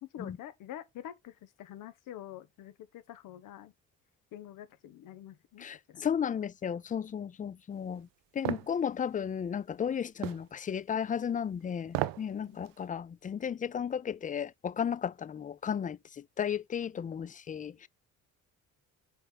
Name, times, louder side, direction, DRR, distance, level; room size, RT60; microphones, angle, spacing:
voice 1, 0.0-3.7 4.3-6.0 12.4-12.6, left 11 dB, 70° left, 1.4 m, -47 dB
voice 2, 5.6-8.1 8.4-16.0 16.4-17.9, left 8 dB, 25° left, 0.4 m, -34 dB
heavy-hitting-foot-steps-on-wood-floor, 8.5-8.7 10.2-10.5 11.9-12.3 12.7-12.8, right 16 dB, 80° right, 0.7 m, -32 dB
5.0 x 4.4 x 5.7 m
supercardioid pair, 85°, 33 cm